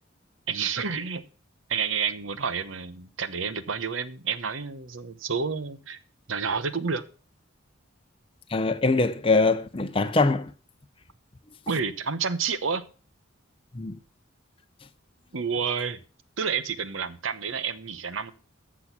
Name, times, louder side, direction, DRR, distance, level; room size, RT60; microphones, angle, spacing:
voice 1, 0.5-1.2 1.7-6.0 6.3-7.0 11.7-12.8 15.3-16.0 16.4-18.3, right 5 dB, 75° right, 1.0 m, -29 dB
voice 2, 8.5-10.5 13.7-14.0, left 3 dB, 25° left, 0.6 m, -23 dB
14.0 x 6.2 x 5.9 m
head